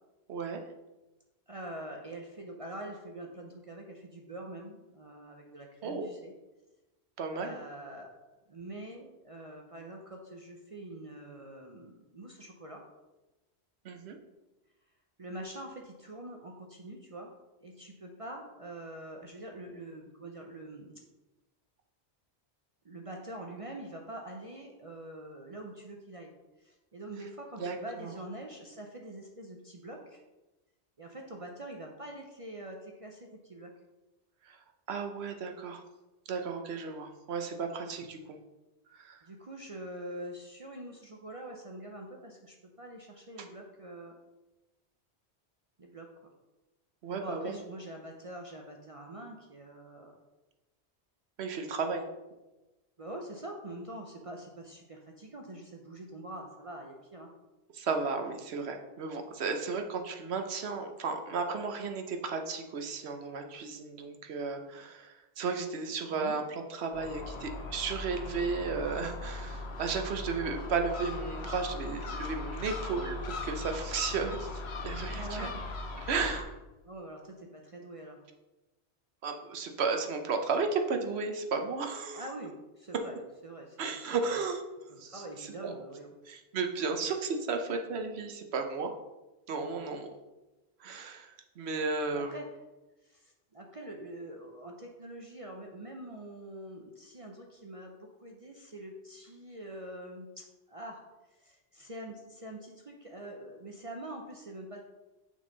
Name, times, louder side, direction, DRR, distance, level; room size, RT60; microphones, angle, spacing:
voice 1, 0.3-0.6 5.8-6.1 7.2-7.6 13.8-14.2 27.6-28.1 34.4-34.6 34.9-35.8 36.3-38.4 38.9-39.2 47.0-47.6 51.4-52.0 57.7-75.5 76.0-76.6 79.2-82.2 83.8-84.6 85.0-85.7 86.3-88.9 89.5-90.1 90.8-92.4, right 4 dB, 70° right, 5 dB, 1.1 m, -34 dB
voice 2, 1.5-6.3 7.3-8.2 8.5-12.8 15.2-17.3 17.6-21.0 22.8-26.3 26.6-30.2 31.0-33.7 39.2-44.2 45.8-46.1 47.1-50.1 53.0-57.3 66.1-66.4 75.1-75.6 76.9-78.2 82.1-83.2 83.4-83.8 84.9-86.1 86.9-87.1 92.1-92.5 93.0-101.0 101.3-104.9, right 1 dB, 35° right, 1 dB, 0.6 m, -44 dB
Gull seagull, 66.9-76.4, left 2 dB, 70° left, 1.1 m, -39 dB
6.4 x 5.5 x 3.9 m, 1.1 s
omnidirectional pair, 1.1 m